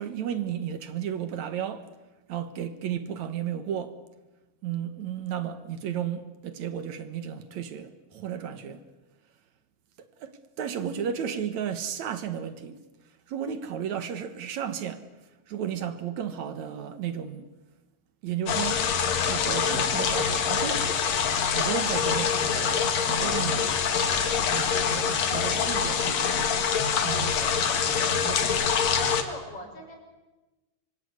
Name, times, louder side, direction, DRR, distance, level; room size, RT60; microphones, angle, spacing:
voice 1, 0.0-1.9 2.3-4.0 4.6-8.8 10.0-12.8 13.3-15.0 15.5-17.5 18.2-18.8 19.3-20.9 21.5-23.8 24.5-26.6 27.0-27.6 28.1-28.7, right 8 dB, 70° right, 2.5 m, -33 dB
sound 1, 18.5-29.2, left 7 dB, 65° left, 3.0 m, -25 dB
voice 2, 27.4-30.0, left 1 dB, 50° left, 7.2 m, -42 dB
25.5 x 23.5 x 9.6 m
omnidirectional pair, 3.5 m